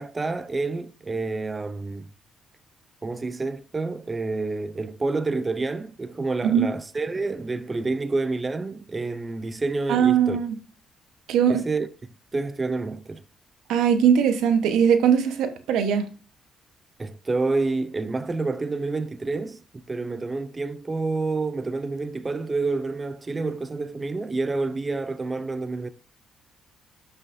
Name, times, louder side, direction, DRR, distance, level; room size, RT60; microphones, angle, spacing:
voice 1, 0.0-2.1 3.0-10.4 11.5-11.9 12.3-13.2 17.0-25.9, right 3 dB, 25° right, 0.6 m, -28 dB
voice 2, 9.9-10.6 11.3-11.6 13.7-16.1, right 8 dB, 85° right, 1.1 m, -20 dB
12.0 x 5.7 x 2.6 m
cardioid pair, 90°, 0 cm